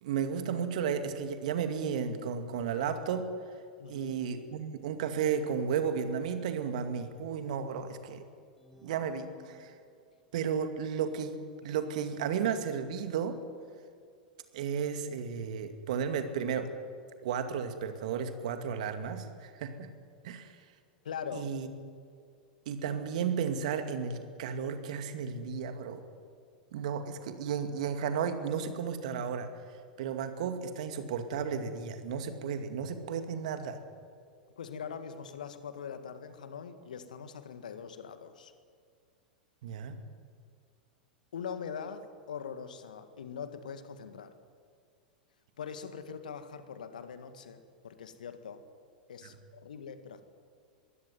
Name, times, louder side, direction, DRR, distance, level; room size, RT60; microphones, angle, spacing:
voice 1, 0.0-3.3 3.9-8.2 8.8-9.7 10.3-13.4 14.5-16.7 17.2-19.9 20.2-20.6 21.3-21.7 22.7-26.0 26.7-29.5 30.0-33.8 39.6-40.0, right 7 dB, 60° right, 8 dB, 2.2 m, -33 dB
voice 2, 3.8-4.1 21.0-21.6 34.6-38.5 41.3-44.3 45.6-48.6 49.1-50.2, left 7 dB, 70° left, 10 dB, 1.9 m, -42 dB
sound 1, 8.6-10.2, right 2 dB, 5° left, 4.4 m, -59 dB
22.0 x 16.5 x 9.6 m, 2.2 s
figure-of-eight pair, 90°, 5 cm